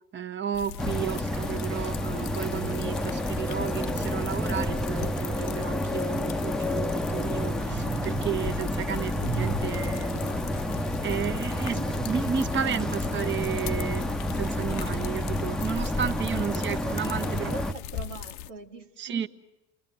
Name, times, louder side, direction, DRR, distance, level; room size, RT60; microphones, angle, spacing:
voice 1, 0.1-10.3 11.0-14.0 14.4-17.5 19.0-19.3, right 8 dB, 30° right, 7 dB, 1.3 m, -33 dB
sound 1, 0.5-18.5, left 11 dB, 60° left, 0.9 m, -40 dB
sound 2, 0.8-17.7, left 1 dB, ahead, 1.0 m, -30 dB
sound 3, 5.5-14.4, right 4 dB, 50° right, 1.6 m, -41 dB
voice 2, 16.5-19.3, right 4 dB, 80° right, 5 dB, 1.9 m, -41 dB
29.5 x 21.0 x 9.2 m, 0.96 s
figure-of-eight pair, 60°, 37 cm